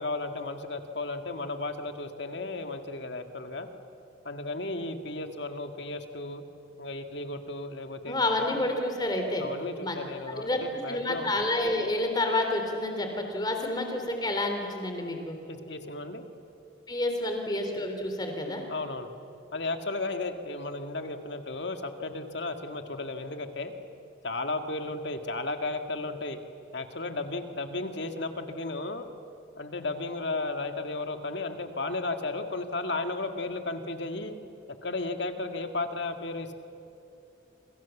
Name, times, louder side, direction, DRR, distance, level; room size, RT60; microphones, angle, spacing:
voice 1, 0.0-3.7 4.2-6.4 6.8-8.6 9.4-11.3 15.5-16.2 18.7-19.1 19.5-23.7 24.2-26.4 26.7-29.1 29.6-34.3 34.8-36.5, left 2 dB, 60° left, 6 dB, 2.0 m, -34 dB
voice 2, 8.1-9.4 9.8-10.0 10.4-10.6 10.9-15.4 16.9-18.6, left 2 dB, 20° left, 4 dB, 3.6 m, -29 dB
28.0 x 27.0 x 7.3 m, 2.7 s
head